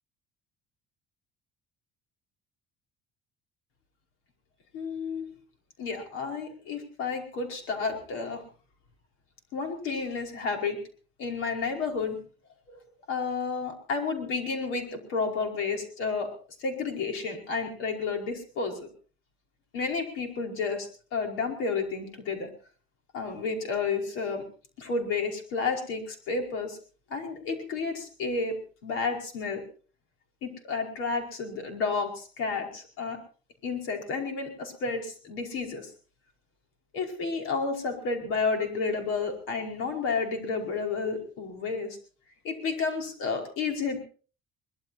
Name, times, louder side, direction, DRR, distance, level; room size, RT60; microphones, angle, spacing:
voice 1, 4.7-5.3 5.8-8.4 9.5-10.8 11.2-12.2 12.7-12.8 13.1-18.9 19.7-22.5 23.1-24.4 24.8-26.8 27.1-28.6 28.8-29.6 30.4-33.2 33.6-35.9 36.9-42.0 42.4-44.0, left 4 dB, 85° left, 3 dB, 5.1 m, -31 dB
23.5 x 20.5 x 2.8 m, 0.38 s
cardioid pair, 165°, 21 cm